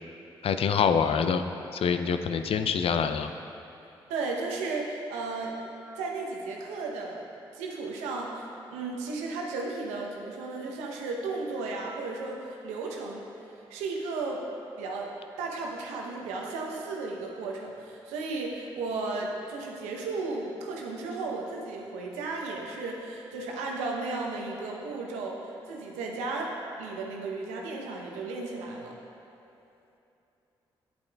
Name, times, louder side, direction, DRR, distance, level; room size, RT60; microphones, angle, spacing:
voice 1, 0.4-1.4 1.7-3.3, left 6 dB, 55° left, 9 dB, 0.4 m, -25 dB
voice 2, 4.1-5.6 5.9-13.3 13.7-14.4 14.8-15.1 15.4-26.5 26.8-28.9, right 3 dB, 85° right, 0 dB, 0.7 m, -34 dB
8.8 x 8.4 x 2.3 m, 2.9 s
hypercardioid pair, 40°, 11 cm